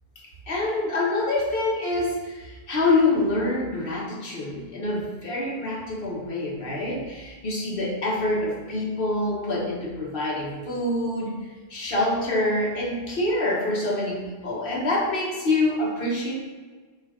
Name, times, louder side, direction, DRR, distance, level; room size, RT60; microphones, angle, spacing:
voice 1, 0.5-11.3 11.7-16.3, left 2 dB, 60° left, -4 dB, 1.2 m, -26 dB
4.6 x 2.4 x 4.8 m, 1.4 s
omnidirectional pair, 1.1 m